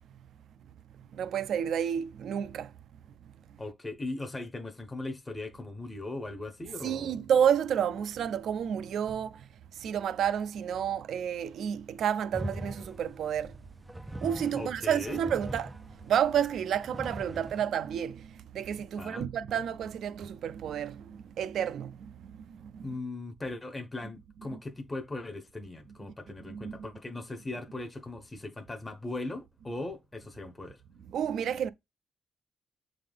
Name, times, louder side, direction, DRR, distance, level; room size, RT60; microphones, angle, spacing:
voice 1, 1.1-2.7 6.8-9.4 9.8-13.5 14.2-22.9 26.5-26.9 31.1-31.7, right 8 dB, 60° right, 0.5 m, -30 dB
voice 2, 3.6-7.1 14.6-15.2 19.0-19.3 22.8-30.8, left 2 dB, 15° left, 0.7 m, -39 dB
sound 1, 12.3-17.7, equal, 5° right, 0.3 m, -42 dB
7.6 x 3.8 x 3.4 m
cardioid pair, 160°, 0 cm